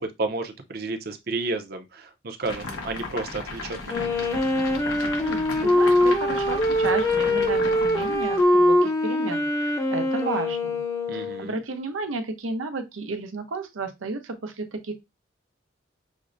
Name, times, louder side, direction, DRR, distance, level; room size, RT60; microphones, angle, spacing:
voice 1, 0.0-4.1 11.1-11.5, right 3 dB, 50° right, 0.6 m, -31 dB
sound 1, 2.4-8.6, left 3 dB, 80° left, 1.0 m, -36 dB
Wind instrument woodwind instrument, 3.9-11.6, left 1 dB, 15° left, 0.6 m, -23 dB
voice 2, 5.2-10.8 11.1-14.9, right 3 dB, 90° right, 0.8 m, -33 dB
6.1 x 2.1 x 2.5 m
head